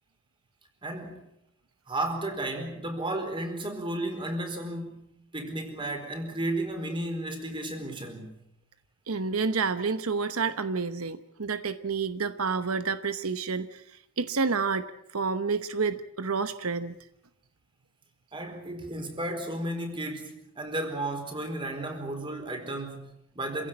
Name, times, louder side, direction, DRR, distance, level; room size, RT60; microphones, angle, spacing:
voice 1, 0.8-1.2 1.9-8.4 18.3-23.7, right 1 dB, 25° right, 4.4 m, -33 dB
voice 2, 9.1-13.8 14.2-14.9 15.1-16.9, right 4 dB, 85° right, 1.0 m, -29 dB
27.0 x 16.5 x 8.8 m
head